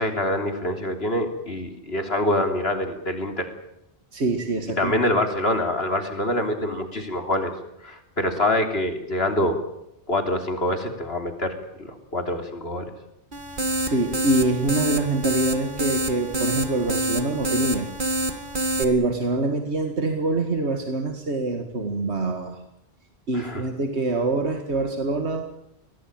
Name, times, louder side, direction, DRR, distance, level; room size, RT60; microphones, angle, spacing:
voice 1, 0.0-3.5 4.8-7.5 7.8-9.6 10.1-12.9 23.3-23.6, left 1 dB, 70° left, 5 dB, 3.6 m, -25 dB
voice 2, 4.1-4.9 13.8-17.9 18.8-22.6 23.3-25.5, right 2 dB, 85° right, 5 dB, 2.3 m, -25 dB
sound 1, 13.3-18.8, right 1 dB, 50° right, 2.3 m, -27 dB
23.5 x 18.5 x 8.9 m, 0.82 s
omnidirectional pair, 1.1 m